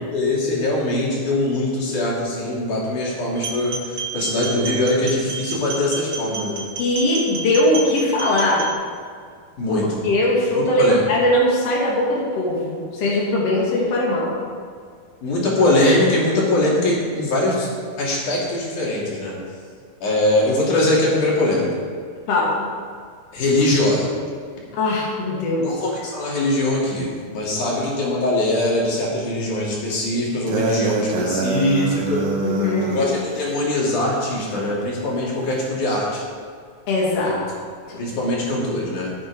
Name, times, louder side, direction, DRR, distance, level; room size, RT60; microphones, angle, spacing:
voice 1, 0.1-6.6 9.6-10.0 10.5-11.1 15.2-17.7 18.0-19.4 20.0-21.7 23.3-24.1 25.6-32.3 32.8-36.2 37.1-37.3 38.0-39.2, left 1 dB, 85° left, -5 dB, 4.3 m, -22 dB
sound 1, 3.3-8.7, right 4 dB, 40° right, 1.8 m, -30 dB
voice 2, 6.8-8.7 9.7-14.4 22.3-22.7 24.7-25.7 32.4-33.1 36.9-37.4 37.9-38.0, left 1 dB, 55° left, -5 dB, 3.3 m, -20 dB
sound 2, 30.5-33.1, right 4 dB, 80° right, 2.7 m, -24 dB
16.0 x 9.4 x 4.8 m, 2.1 s
omnidirectional pair, 3.4 m